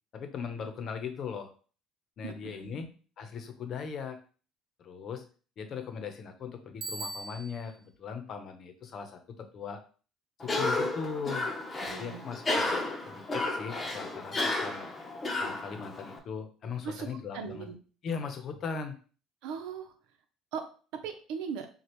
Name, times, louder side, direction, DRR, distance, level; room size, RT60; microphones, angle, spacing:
voice 1, 0.1-1.5 2.2-2.9 3.2-4.2 4.8-5.2 5.6-9.8 10.4-11.5 11.9-14.8 15.4-17.7 18.0-18.9, left 6 dB, 50° left, 7 dB, 0.8 m, -39 dB
voice 2, 2.2-2.8 11.8-12.2 16.8-17.1 17.3-17.8 19.4-19.9 20.5-21.7, right 6 dB, 75° right, 6 dB, 0.8 m, -39 dB
Bicycle bell, 6.8-7.8, right 2 dB, 50° right, 1.1 m, -40 dB
Cough, 10.4-16.2, left 2 dB, 25° left, 0.9 m, -32 dB
6.4 x 2.4 x 3.1 m, 0.39 s
supercardioid pair, 100°, 0 cm